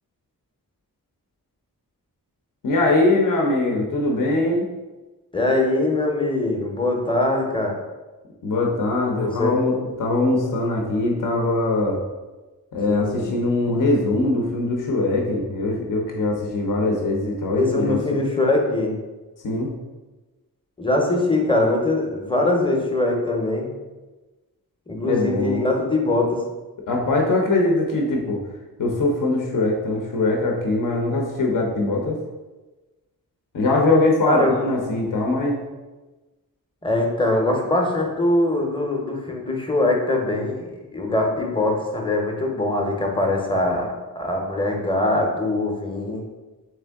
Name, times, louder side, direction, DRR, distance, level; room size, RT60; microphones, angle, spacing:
voice 1, 2.6-4.7 8.4-12.0 12.7-18.2 19.4-19.7 25.1-25.6 26.9-28.4 28.8-32.2 33.5-35.6, left 2 dB, 55° left, 0 dB, 0.7 m, -22 dB
voice 2, 5.3-7.7 9.2-9.5 12.9-13.3 17.6-19.0 20.8-23.7 24.9-26.4 34.2-34.6 36.8-43.9 44.1-46.2, left 2 dB, 15° left, 1 dB, 0.7 m, -22 dB
3.5 x 3.3 x 3.4 m, 1.2 s
wide cardioid pair, 90°, 37 cm